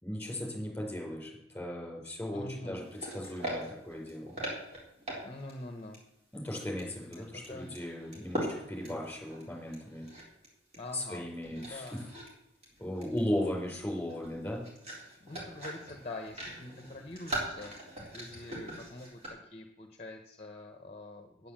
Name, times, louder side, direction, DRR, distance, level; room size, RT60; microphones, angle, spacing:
voice 1, 0.0-4.4 6.3-10.0 10.9-12.0 12.8-14.6, left 1 dB, 10° left, -2 dB, 4.5 m, -37 dB
voice 2, 2.3-2.8 5.2-6.0 7.2-7.7 10.8-12.0 15.2-21.5, left 2 dB, 35° left, 4 dB, 1.0 m, -45 dB
sound 1, 2.8-5.6 5.9-6.0 6.6-10.5 10.7-11.2 11.4-12.3 12.6-19.3, right 1 dB, 35° right, 3.9 m, -41 dB
9.4 x 9.3 x 7.5 m, 0.80 s
head